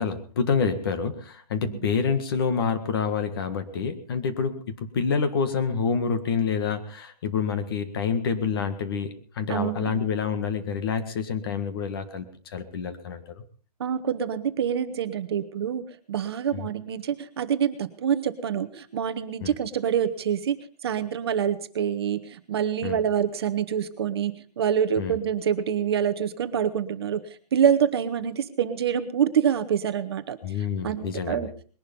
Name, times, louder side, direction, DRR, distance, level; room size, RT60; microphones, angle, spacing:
voice 1, 0.0-13.4 16.5-16.7 19.4-19.5 22.8-23.0 25.0-25.2 30.4-31.5, left 6 dB, 35° left, 9 dB, 1.7 m, -27 dB
voice 2, 9.5-10.0 13.8-20.6 20.8-27.2 27.5-30.4 30.8-31.5, right 8 dB, 40° right, 10 dB, 1.1 m, -26 dB
21.0 x 11.5 x 5.4 m, 0.43 s
hypercardioid pair, 180°, 21 cm